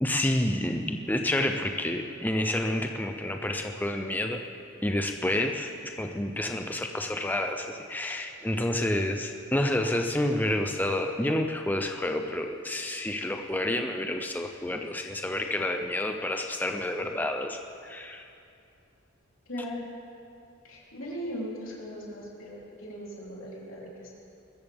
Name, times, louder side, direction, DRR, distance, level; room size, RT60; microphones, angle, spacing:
voice 1, 0.0-4.4 4.8-18.2, left 1 dB, 10° left, 4 dB, 0.5 m, -29 dB
voice 2, 19.5-19.8 20.6-24.1, equal, 75° left, -5 dB, 3.5 m, -38 dB
21.0 x 14.0 x 3.6 m, 2.5 s
head